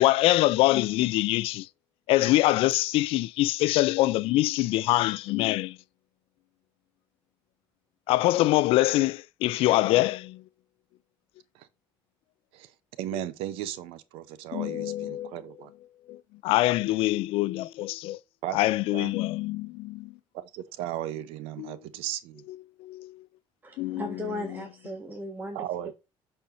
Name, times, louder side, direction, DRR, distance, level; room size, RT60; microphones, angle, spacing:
voice 1, 0.0-1.7 2.1-5.8 8.1-10.4 14.5-15.3 16.1-16.2 16.4-18.2 18.5-20.1 21.6-21.7 22.8-23.2 23.8-24.2, left 17 dB, 75° left, 0.4 m, -24 dB
voice 2, 13.0-15.7 18.4-18.6 18.9-19.1 20.3-22.4 25.5-25.9, right 13 dB, 85° right, 0.8 m, -36 dB
voice 3, 23.6-25.7, left 1 dB, 20° right, 1.4 m, -36 dB
12.5 x 4.4 x 2.6 m
cardioid pair, 120°, 10 cm